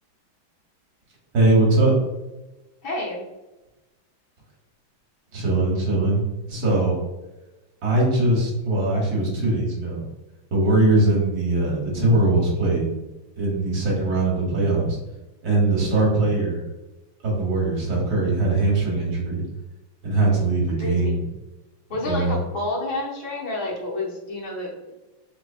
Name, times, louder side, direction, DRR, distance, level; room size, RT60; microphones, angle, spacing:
voice 1, 1.3-1.9 5.3-6.2 6.5-7.0 7.8-10.0 10.5-12.9 13.4-15.0 15.4-16.7 17.2-19.4 20.0-21.2 22.0-22.4, right 2 dB, 55° right, -2 dB, 1.4 m, -21 dB
voice 2, 2.8-3.2 20.8-21.2 21.9-24.9, left 2 dB, 60° left, -4 dB, 1.4 m, -29 dB
4.2 x 2.8 x 2.5 m, 1.1 s
omnidirectional pair, 2.2 m